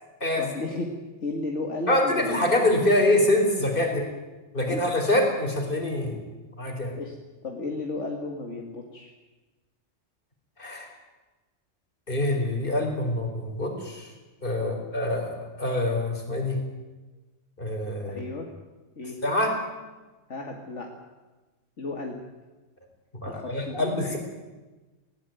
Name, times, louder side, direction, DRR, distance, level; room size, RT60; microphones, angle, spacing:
voice 1, 0.4-0.9 1.2-2.5 4.7-4.8 6.9-7.2 7.4-9.1 14.6-14.8 18.0-18.5 19.0-19.2 20.3-20.9 21.8-22.2 23.2-24.2, left 3 dB, 65° left, 1 dB, 2.2 m, -34 dB
voice 2, 1.9-4.1 4.5-6.2 6.6-6.9 10.6-10.9 12.1-14.1 14.4-16.6 17.6-18.2 19.2-19.5 23.2-24.2, left 1 dB, 45° left, 2 dB, 4.4 m, -25 dB
19.0 x 17.0 x 9.2 m, 1.2 s
omnidirectional pair, 1.3 m